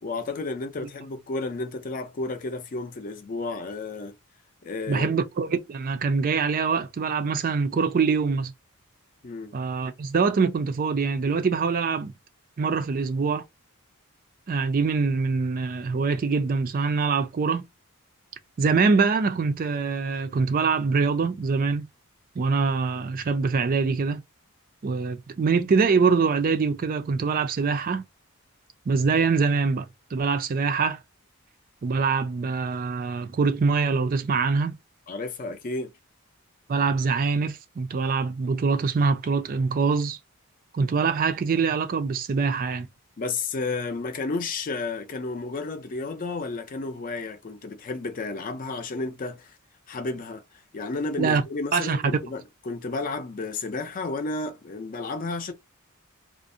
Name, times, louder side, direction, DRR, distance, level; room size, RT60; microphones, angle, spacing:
voice 1, 0.0-4.2 4.6-5.2 9.2-9.5 35.1-35.9 43.2-49.6 49.9-50.4 50.7-55.5, left 3 dB, 40° left, 0.4 m, -32 dB
voice 2, 4.9-8.5 9.5-12.1 12.6-13.4 14.5-17.6 18.6-21.9 22.4-24.2 24.8-28.0 28.9-29.9 30.1-31.0 31.8-34.7 36.7-40.2 40.7-42.9 51.2-51.4 51.7-52.0, right 4 dB, 40° right, 0.4 m, -24 dB
2.5 x 2.0 x 2.6 m
head